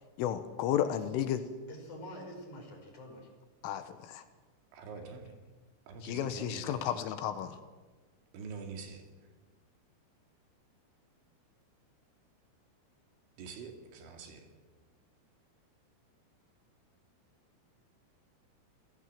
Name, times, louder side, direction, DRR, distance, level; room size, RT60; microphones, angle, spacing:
voice 1, 0.2-1.4 3.6-4.2 6.0-7.6, left 10 dB, 80° left, 9 dB, 3.6 m, -33 dB
voice 2, 1.3-3.3, equal, 40° left, 2 dB, 6.1 m, -47 dB
voice 3, 4.7-5.3 5.9-7.0 8.3-9.0 13.4-14.5, right 5 dB, 70° right, 3 dB, 4.6 m, -45 dB
28.5 x 16.5 x 7.4 m, 1.3 s
omnidirectional pair, 5.8 m